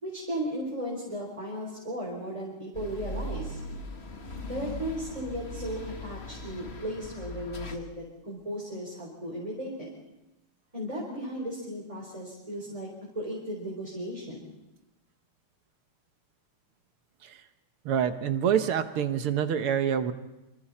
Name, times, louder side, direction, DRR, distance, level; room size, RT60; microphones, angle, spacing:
voice 1, 0.0-3.6 4.4-9.9 10.7-12.9 13.1-14.5, equal, 15° right, -4 dB, 4.6 m, -36 dB
sound 1, 2.7-7.8, left 2 dB, 30° left, 1.6 m, -39 dB
voice 2, 17.9-20.1, right 8 dB, 80° right, 9 dB, 2.0 m, -26 dB
27.0 x 26.5 x 4.3 m, 0.97 s
omnidirectional pair, 2.4 m